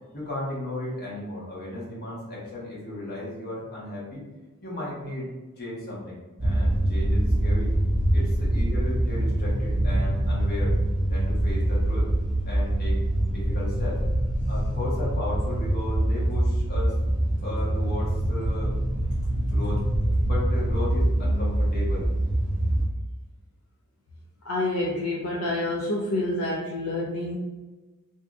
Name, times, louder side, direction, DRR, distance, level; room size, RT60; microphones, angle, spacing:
voice 1, 0.1-4.2 4.6-5.3 5.6-7.7 8.1-10.8 11.1-12.1 12.5-13.0 13.3-14.0 14.5-16.9 17.4-18.7 19.4-19.8 20.2-22.1, left 2 dB, 45° left, -5 dB, 1.1 m, -35 dB
sound 1, 6.4-22.9, right 1 dB, 5° right, 0.7 m, -24 dB
voice 2, 24.4-27.4, left 2 dB, 70° left, -4 dB, 0.6 m, -28 dB
2.7 x 2.5 x 3.4 m, 1.1 s
head